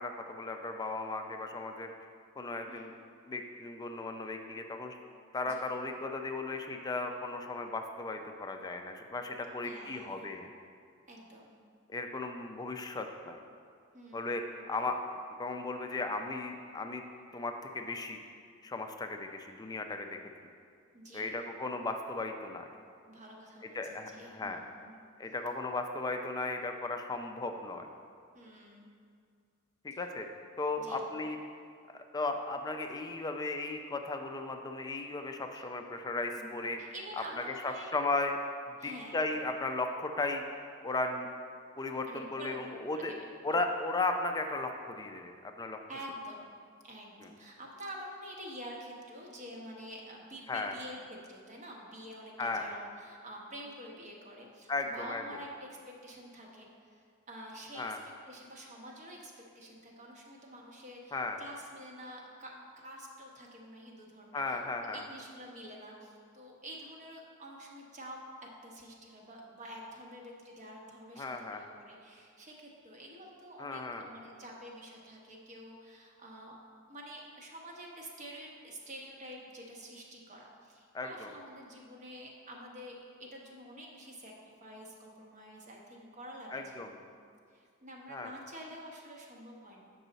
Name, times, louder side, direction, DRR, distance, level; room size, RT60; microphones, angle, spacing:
voice 1, 0.0-1.9 2.4-2.9 3.3-5.0 5.3-10.5 11.9-13.4 14.1-14.4 14.7-15.0 15.4-17.0 17.3-18.2 18.6-20.2 21.1-22.7 23.7-24.6 25.2-27.9 29.8-30.3 30.6-31.4 31.9-36.8 37.4-38.4 38.7-40.5 40.8-41.3 41.8-43.1 43.4-45.8 47.2-47.3 50.5-50.7 52.4-52.7 54.7-55.2 57.8-58.0 61.1-61.4 64.3-65.0 71.2-71.6 73.6-74.1 80.9-81.3 86.5-86.9 88.1-88.3, left 3 dB, 20° left, 5 dB, 0.4 m, -36 dB
voice 2, 9.6-10.3 11.1-11.6 13.9-14.4 20.9-21.4 23.1-25.0 28.3-28.9 29.9-30.0 30.8-31.0 36.3-37.9 38.8-39.1 42.0-43.2 45.9-46.5 46.8-58.0 58.3-62.5 62.8-68.2 68.6-76.6 76.9-84.3 84.6-87.1 87.5-89.8, equal, 35° right, -1 dB, 1.0 m, -48 dB
7.6 x 5.5 x 4.0 m, 2.2 s
head